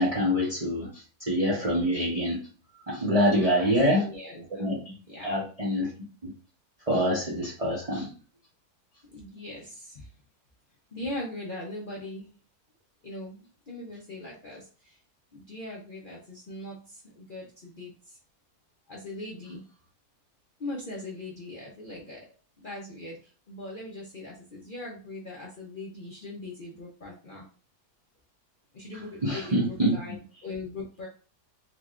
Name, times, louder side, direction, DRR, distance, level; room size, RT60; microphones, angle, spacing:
voice 1, 0.0-2.4 2.9-4.1 4.6-4.9 5.2-5.9 6.9-8.1 29.2-30.0, equal, 35° right, -3 dB, 0.6 m, -25 dB
voice 2, 3.5-4.7 5.1-5.4 9.1-10.1 10.9-12.3 13.0-15.0 15.3-18.2 18.9-19.6 20.6-22.3 22.6-27.5 28.7-31.1, left 2 dB, 50° left, -3 dB, 0.6 m, -40 dB
3.5 x 3.3 x 2.4 m, 0.38 s
omnidirectional pair, 1.6 m